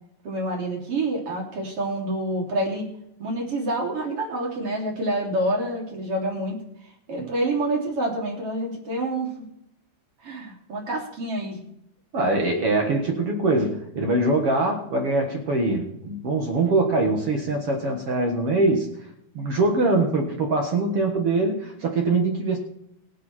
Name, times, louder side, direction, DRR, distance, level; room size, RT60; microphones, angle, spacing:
voice 1, 0.2-2.9 3.2-6.6 7.1-9.3 10.2-11.6, right 1 dB, 35° right, -2 dB, 3.9 m, -27 dB
voice 2, 12.1-18.9 19.3-22.6, right 2 dB, 60° right, 2 dB, 1.5 m, -23 dB
22.5 x 7.5 x 4.4 m, 0.76 s
omnidirectional pair, 4.9 m